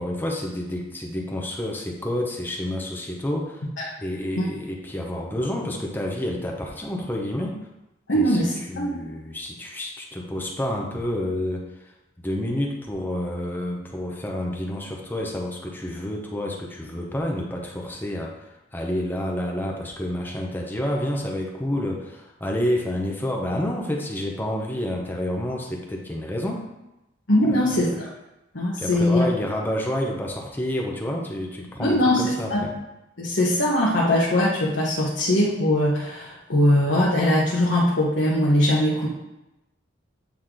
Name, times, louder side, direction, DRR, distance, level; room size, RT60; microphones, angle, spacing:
voice 1, 0.0-3.7 4.0-7.6 8.1-11.9 12.2-26.6 27.4-27.8 28.8-32.7, left 1 dB, 10° left, 0 dB, 0.8 m, -29 dB
voice 2, 8.1-9.0 27.3-28.1 28.5-29.3 31.8-32.2 32.5-32.6 33.2-39.1, left 1 dB, 75° left, -6 dB, 1.2 m, -21 dB
8.7 x 3.1 x 3.8 m, 0.94 s
head